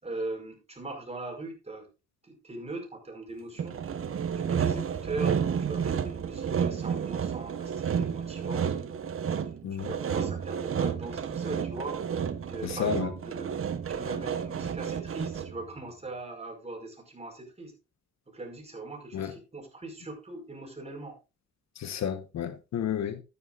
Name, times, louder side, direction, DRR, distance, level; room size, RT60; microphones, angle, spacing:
voice 1, 0.0-1.9 2.2-3.8 4.4-8.7 9.4-9.5 9.8-12.0 12.5-13.5 13.9-17.7 18.3-21.1, right 2 dB, 20° right, 5.1 m, -40 dB
Sawing, 3.6-15.6, right 7 dB, 45° right, 1.2 m, -31 dB
voice 2, 12.6-13.1 19.1-19.3 21.8-23.2, left 8 dB, 65° left, 1.3 m, -31 dB
13.0 x 9.8 x 2.5 m
cardioid pair, 90°, 30 cm